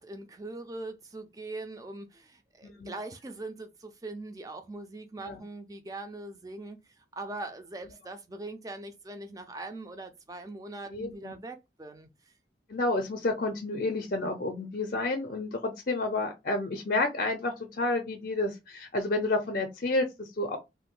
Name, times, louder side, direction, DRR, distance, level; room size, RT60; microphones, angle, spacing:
voice 1, 0.0-6.9 7.2-12.1, right 2 dB, 20° right, 0.4 m, -41 dB
voice 2, 2.6-3.0 5.2-5.4 10.9-11.4 12.7-20.6, left 2 dB, 50° left, 0.5 m, -30 dB
2.6 x 2.2 x 3.7 m
head